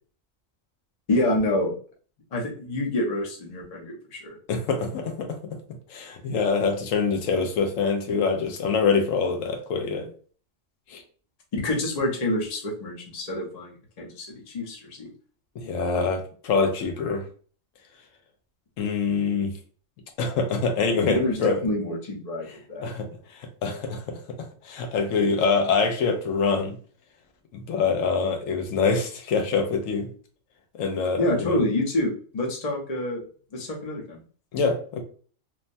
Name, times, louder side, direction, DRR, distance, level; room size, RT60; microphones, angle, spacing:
voice 1, 1.1-1.7 2.3-4.4 11.5-15.1 21.1-22.9 31.2-33.2 33.5-34.2, left 1 dB, 40° left, 0.7 m, -27 dB
voice 2, 4.5-5.3 5.9-10.1 10.9-11.0 15.6-17.2 18.8-19.5 20.2-21.6 22.8-23.1 23.6-24.2 24.6-26.8 27.5-30.1 30.8-31.6 34.5-35.0, left 5 dB, 85° left, 1.0 m, -25 dB
3.1 x 2.1 x 2.5 m
omnidirectional pair, 1.3 m